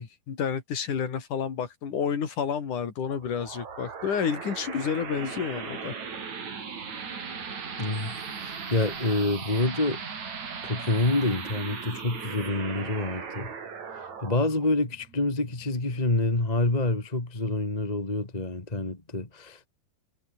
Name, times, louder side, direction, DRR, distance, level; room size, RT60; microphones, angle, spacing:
voice 1, 0.0-5.9, left 7 dB, 60° left, 4.8 m, -30 dB
sound 1, 3.1-16.2, right 6 dB, 55° right, 4.8 m, -38 dB
voice 2, 7.8-10.0 10.6-13.5 14.0-19.7, left 2 dB, 15° left, 2.2 m, -27 dB
omnidirectional pair, 4.0 m